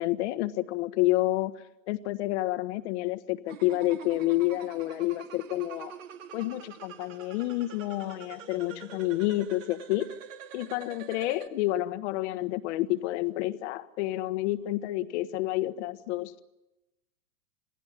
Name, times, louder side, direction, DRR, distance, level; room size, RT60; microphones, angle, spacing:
voice 1, 0.0-6.0 6.3-10.1 10.5-16.4, left 17 dB, 55° left, 11 dB, 1.5 m, -29 dB
sound 1, 3.5-11.5, right 8 dB, 65° right, 2.6 m, -46 dB
27.5 x 18.5 x 8.2 m, 0.98 s
hypercardioid pair, 120°, 42 cm